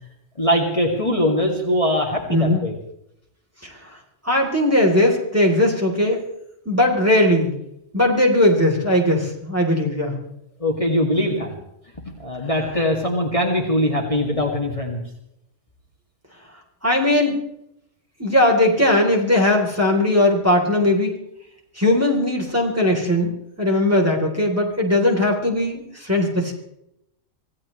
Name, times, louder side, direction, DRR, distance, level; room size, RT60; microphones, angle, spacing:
voice 1, 0.4-2.7 10.6-11.6 12.0-15.0, left 1 dB, 25° left, 0 dB, 2.4 m, -22 dB
voice 2, 2.3-2.6 3.6-3.8 4.2-6.2 6.7-7.5 7.9-10.2 16.8-17.4 18.2-21.1 21.8-26.5, left 1 dB, 10° right, -1 dB, 3.6 m, -19 dB
26.5 x 16.5 x 3.3 m, 0.79 s
omnidirectional pair, 1.3 m